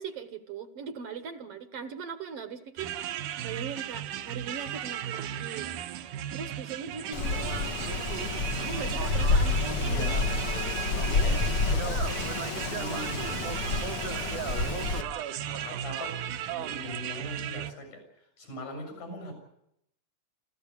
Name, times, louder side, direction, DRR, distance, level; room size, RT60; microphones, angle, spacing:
voice 1, 0.0-3.2 3.4-5.7 6.3-7.8 8.6-10.2, right 6 dB, 60° right, 9 dB, 1.8 m, -40 dB
sound 1, 2.8-17.7, right 11 dB, 80° right, 2.5 m, -35 dB
Wind, 7.1-15.0, left 4 dB, 60° left, 1.6 m, -29 dB
voice 2, 9.7-13.6 14.2-14.8 15.4-16.2 16.5-18.0 18.4-19.4, left 1 dB, 75° left, 5 dB, 8.7 m, -41 dB
28.0 x 14.5 x 8.4 m, 0.78 s
omnidirectional pair, 3.6 m